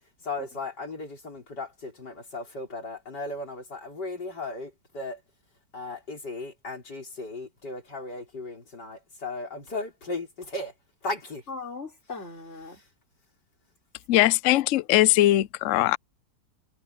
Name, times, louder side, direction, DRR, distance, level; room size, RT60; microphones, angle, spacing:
voice 1, 0.3-5.2 5.7-10.7 11.0-11.4, left 2 dB, 60° left, 5.5 m, -36 dB
voice 2, 11.5-12.8 14.1-14.6, left 4 dB, 35° left, 5.6 m, -40 dB
voice 3, 14.1-16.0, left 15 dB, 90° left, 0.6 m, -20 dB
omnidirectional pair, 2.1 m